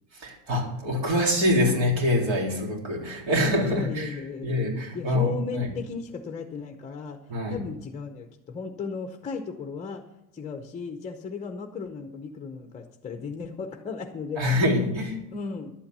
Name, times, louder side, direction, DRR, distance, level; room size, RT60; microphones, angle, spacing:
voice 1, 0.1-4.1 4.4-5.7 7.3-7.6 14.4-15.2, left 1 dB, 65° right, 0 dB, 3.9 m, -25 dB
voice 2, 3.7-4.7 4.9-10.0 10.3-14.6 15.3-15.7, left 5 dB, 15° left, 5 dB, 0.7 m, -35 dB
11.5 x 8.7 x 6.7 m, 0.84 s
cardioid pair, 160°, 47 cm